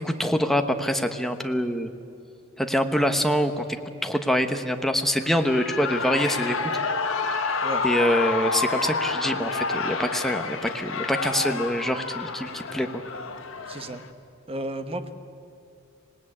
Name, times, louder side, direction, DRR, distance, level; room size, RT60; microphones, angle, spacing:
voice 1, 0.0-1.9 2.6-3.6 4.0-6.6 7.8-13.0, equal, ahead, 5 dB, 1.1 m, -25 dB
Shout / Cheering, 5.2-14.1, left 4 dB, 80° left, 1.4 m, -29 dB
voice 2, 13.7-14.0 14.5-15.1, right 1 dB, 30° right, 8 dB, 1.3 m, -33 dB
26.0 x 18.5 x 8.7 m, 2.6 s
head